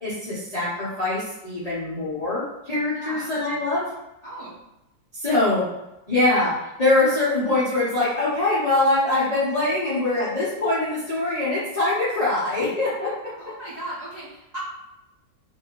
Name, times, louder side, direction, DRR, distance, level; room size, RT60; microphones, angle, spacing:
voice 1, 0.0-3.9 5.1-5.7 6.1-13.3, left 2 dB, 65° left, -10 dB, 0.3 m, -23 dB
voice 2, 2.9-3.3 4.2-4.7 13.4-14.6, right 1 dB, 60° right, -10 dB, 0.4 m, -37 dB
2.7 x 2.6 x 2.9 m, 0.91 s
omnidirectional pair, 2.0 m